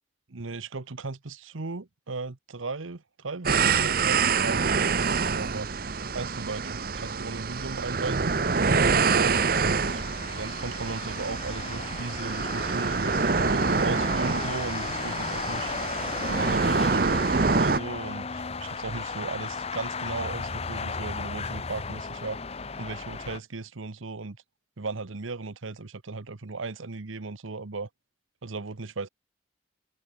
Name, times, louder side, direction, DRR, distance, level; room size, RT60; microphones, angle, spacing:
voice 1, 0.3-5.7 6.1-8.3 9.1-10.0 10.3-15.7 16.4-24.4 24.8-27.9 28.4-29.1, right 3 dB, 85° right, 1.1 m, -36 dB
sound 1, 3.4-17.8, right 4 dB, 45° right, 0.8 m, -26 dB
sound 2, 8.3-23.4, left 5 dB, 30° left, 0.7 m, -36 dB
open air
head